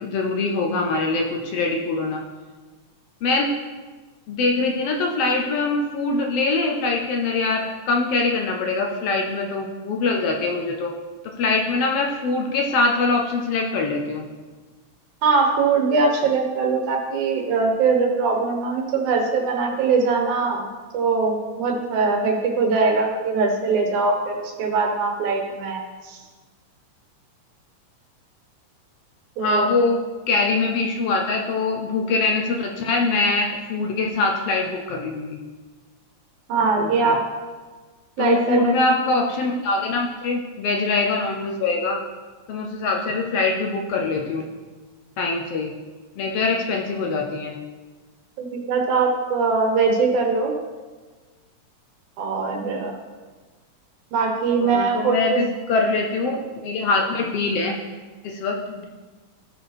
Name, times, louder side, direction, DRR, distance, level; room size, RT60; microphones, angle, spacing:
voice 1, 0.0-2.2 3.2-3.5 4.3-10.9 11.2-14.2 29.4-35.4 36.8-37.2 38.2-42.0 42.5-44.5 45.2-45.7 46.2-47.6 54.6-57.8 58.2-58.8, left 3 dB, 70° left, 1 dB, 1.6 m, -23 dB
voice 2, 15.2-26.2 29.4-29.7 36.5-37.2 38.2-38.8 48.4-50.5 52.2-53.0 54.1-55.4, right 4 dB, 90° right, 2 dB, 2.7 m, -22 dB
13.5 x 4.9 x 4.2 m, 1.3 s
omnidirectional pair, 3.3 m